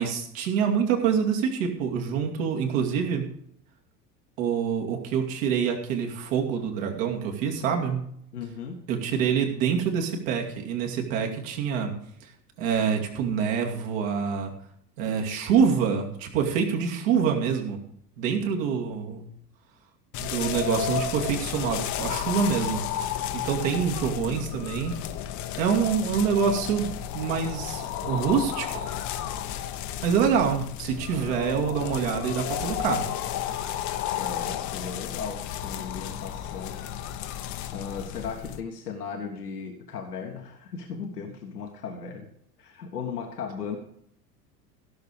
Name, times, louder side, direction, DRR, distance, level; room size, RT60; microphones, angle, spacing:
voice 1, 0.0-3.2 4.4-8.0 8.9-11.9 12.2-12.3 12.6-14.5 15.0-17.8 18.2-19.2 20.2-24.9 25.6-28.9 30.0-33.1, right 7 dB, 55° right, 2 dB, 2.5 m, -26 dB
voice 2, 8.3-8.8 18.6-18.7 24.1-24.4 34.2-36.8 37.7-42.3 42.6-43.8, left 6 dB, 75° left, 3 dB, 1.5 m, -36 dB
sound 1, 20.1-38.6, left 10 dB, 40° left, 1.0 m, -33 dB
16.0 x 6.8 x 5.1 m, 0.71 s
figure-of-eight pair, 75°, 47 cm